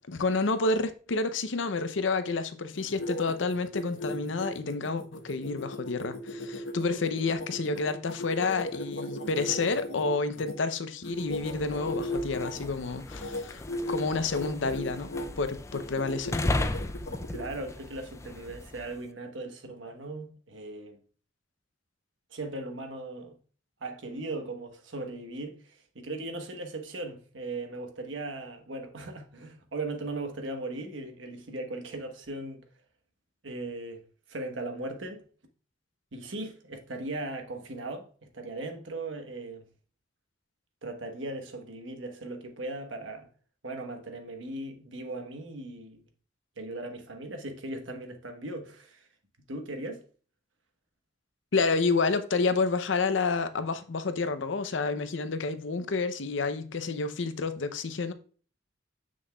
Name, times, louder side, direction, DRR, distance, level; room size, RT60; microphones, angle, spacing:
voice 1, 0.1-16.4 51.5-58.1, left 4 dB, 70° left, 0.6 m, -29 dB
sound 1, 2.7-10.5 11.0-12.7 13.1-13.4 13.7-14.0 14.3-15.3 15.7-17.5, left 1 dB, 90° left, 1.3 m, -36 dB
sound 2, 11.2-19.0, left 2 dB, 15° left, 0.3 m, -36 dB
voice 2, 17.3-21.0 22.3-23.4 23.8-32.6 33.4-34.0 34.3-35.2 36.1-39.7 40.8-43.3 43.6-46.0 46.6-49.1 49.5-50.0, right 2 dB, 75° right, 1.2 m, -38 dB
7.3 x 6.1 x 2.3 m
head